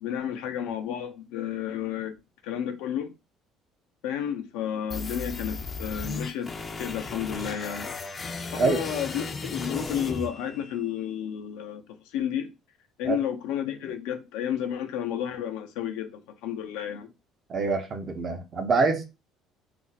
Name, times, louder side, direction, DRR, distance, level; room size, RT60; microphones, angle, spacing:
voice 1, 0.0-2.2 2.4-3.1 4.0-6.5 6.8-7.9 8.5-11.8 12.1-12.5 13.0-17.1, left 9 dB, 85° left, 0.5 m, -31 dB
sound 1, 4.9-10.9, left 4 dB, 30° left, 0.5 m, -35 dB
voice 2, 17.5-19.0, right 4 dB, 45° right, 0.7 m, -25 dB
2.5 x 2.1 x 3.9 m
supercardioid pair, 85°, 0 cm